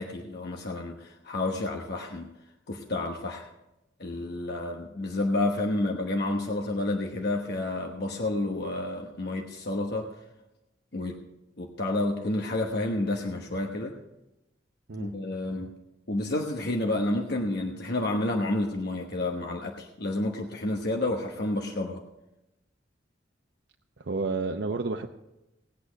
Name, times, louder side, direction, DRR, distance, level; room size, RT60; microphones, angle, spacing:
voice 1, 0.0-2.3 2.7-3.5 4.0-10.1 10.9-11.2 11.6-14.0 14.9-15.8 16.1-22.0, left 2 dB, 60° left, 2 dB, 1.2 m, -30 dB
voice 2, 24.0-25.1, right 3 dB, 65° right, 4 dB, 0.7 m, -30 dB
18.5 x 8.5 x 5.1 m, 0.94 s
head